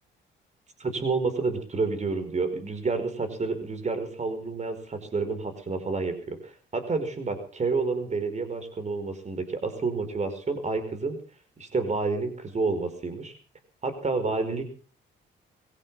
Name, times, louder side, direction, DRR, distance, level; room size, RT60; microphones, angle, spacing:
voice 1, 0.8-11.2 11.6-13.3 13.8-14.7, right 4 dB, 35° right, 9 dB, 5.2 m, -29 dB
22.0 x 17.0 x 3.6 m, 0.39 s
cardioid pair, 90°, 20 cm